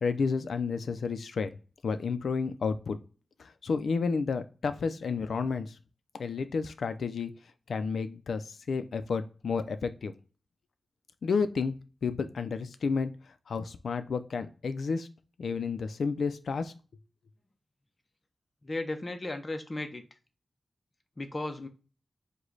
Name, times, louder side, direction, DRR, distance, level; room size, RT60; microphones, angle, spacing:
voice 1, 0.0-1.5 1.8-3.0 3.4-5.8 6.2-7.3 7.7-10.1 11.2-11.7 12.0-13.1 13.5-15.1 15.4-16.7, left 5 dB, 85° left, 10 dB, 0.4 m, -31 dB
voice 2, 18.6-20.0 21.2-21.7, left 2 dB, 30° left, 6 dB, 0.6 m, -35 dB
4.9 x 2.2 x 3.9 m, 0.36 s
wide cardioid pair, 130°, 0 cm